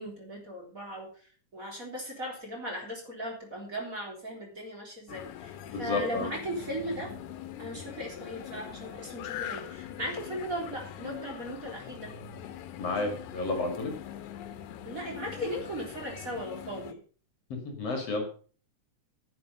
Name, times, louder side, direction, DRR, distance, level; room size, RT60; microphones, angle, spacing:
voice 1, 0.0-7.1 7.6-12.1 14.8-17.0, equal, 25° right, 0 dB, 3.8 m, -38 dB
sound 1, 5.1-16.9, left 10 dB, 75° left, 2.3 m, -42 dB
voice 2, 5.7-6.3 12.8-13.9 17.5-18.4, left 3 dB, 55° left, 4 dB, 3.0 m, -31 dB
10.5 x 9.5 x 5.4 m, 0.40 s
omnidirectional pair, 3.6 m